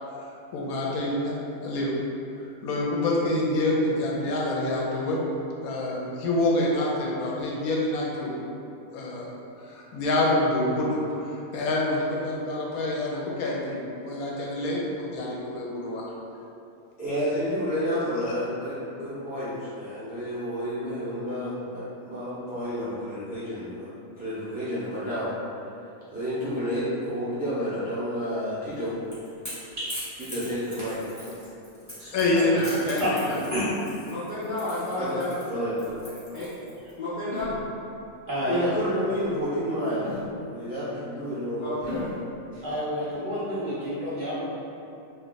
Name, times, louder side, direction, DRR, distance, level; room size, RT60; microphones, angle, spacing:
voice 1, 0.2-1.9 2.6-5.2 5.6-8.3 8.9-9.3 9.6-16.1 32.1-33.4, left 1 dB, 80° left, -3 dB, 1.0 m, -27 dB
voice 2, 17.0-23.9 24.2-25.3 26.1-29.0 30.2-31.0 31.8-32.6 35.0-35.2 35.5-35.7 38.4-42.0, equal, 10° right, -12 dB, 0.4 m, -30 dB
Crackle / Crack, 28.7-36.9, equal, 15° left, 1.2 m, -42 dB
voice 3, 33.5-34.0 38.3-38.7 42.5-44.5, equal, 40° right, -11 dB, 0.9 m, -29 dB
voice 4, 34.1-35.3 36.3-36.5 37.0-37.6 41.6-42.1, left 2 dB, 55° left, -11 dB, 0.5 m, -31 dB
sound 1, 35.9-36.1 37.3-38.0 38.6-38.8 40.0-40.3 41.8-42.1, left 2 dB, 70° right, 0.9 m, -37 dB
2.4 x 2.3 x 3.8 m, 2.7 s
omnidirectional pair, 1.5 m